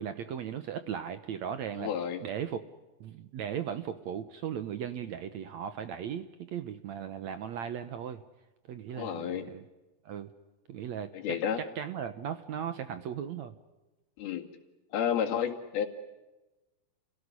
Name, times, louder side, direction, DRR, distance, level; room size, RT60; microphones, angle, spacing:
voice 1, 0.0-1.9 2.2-2.6 3.0-8.2 8.7-9.7 10.1-10.3 10.7-13.5, right 8 dB, 70° right, 11 dB, 1.8 m, -37 dB
voice 2, 1.8-2.2 8.9-9.5 11.1-11.6 14.2-14.5 14.9-15.9, left 8 dB, 85° left, 5 dB, 4.1 m, -31 dB
30.0 x 17.5 x 9.8 m, 1.1 s
omnidirectional pair, 4.3 m